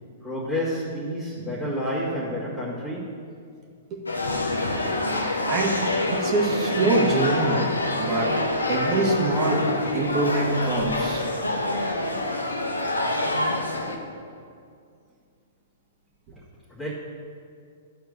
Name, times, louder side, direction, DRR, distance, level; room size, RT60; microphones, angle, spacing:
voice 1, 0.2-3.2 16.7-16.9, equal, 10° left, -11 dB, 2.5 m, -30 dB
sound 1, 4.1-14.0, left 1 dB, 90° left, 1.1 m, -26 dB
voice 2, 6.1-7.6 7.9-8.3 8.7-9.6 9.9-11.3, right 2 dB, 35° right, -1 dB, 2.2 m, -24 dB
12.0 x 4.6 x 6.8 m, 2.3 s
hypercardioid pair, 115°, 0 cm